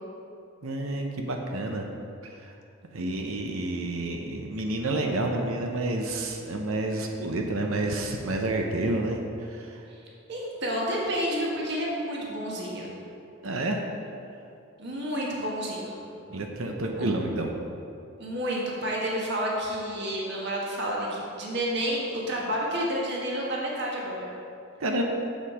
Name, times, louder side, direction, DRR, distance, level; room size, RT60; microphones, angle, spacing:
voice 1, 0.6-1.9 2.2-2.5 2.9-9.9 13.4-13.8 16.3-17.5 24.8-25.0, right 2 dB, 80° right, 2 dB, 0.8 m, -29 dB
voice 2, 10.3-12.9 14.8-16.0 17.0-17.1 18.2-24.3, equal, 55° right, -3 dB, 1.5 m, -30 dB
7.4 x 7.2 x 5.0 m, 2.6 s
head